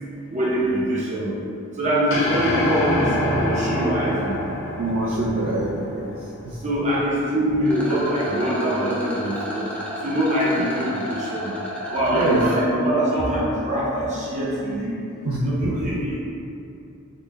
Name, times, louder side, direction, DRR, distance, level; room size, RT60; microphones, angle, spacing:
voice 1, 0.3-1.3 1.8-4.4 6.6-9.7 10.0-11.5 11.9-15.0 15.4-16.2, equal, 35° right, -6 dB, 0.7 m, -23 dB
sound 1, 2.1-6.5, left 1 dB, 60° left, 0.6 m, -26 dB
voice 2, 4.8-6.6 10.6-10.7 12.1-12.4 15.2-15.8, right 2 dB, 80° right, -6 dB, 0.4 m, -25 dB
Rattle, 7.6-12.6, equal, 5° left, 0.5 m, -32 dB
3.8 x 2.2 x 3.4 m, 2.7 s
head